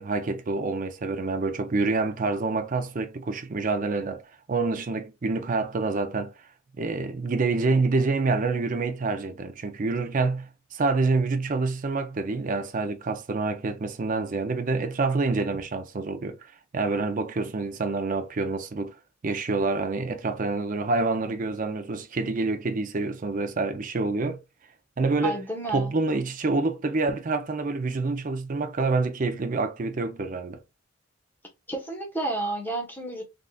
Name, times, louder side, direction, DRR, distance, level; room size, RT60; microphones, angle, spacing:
voice 1, 0.0-4.2 4.5-6.3 6.8-18.9 19.2-24.4 25.0-25.4 25.7-30.6, right 3 dB, 35° right, 0.4 m, -27 dB
voice 2, 25.2-25.9 31.7-33.2, right 2 dB, 10° left, 1.0 m, -30 dB
3.6 x 2.4 x 2.3 m
head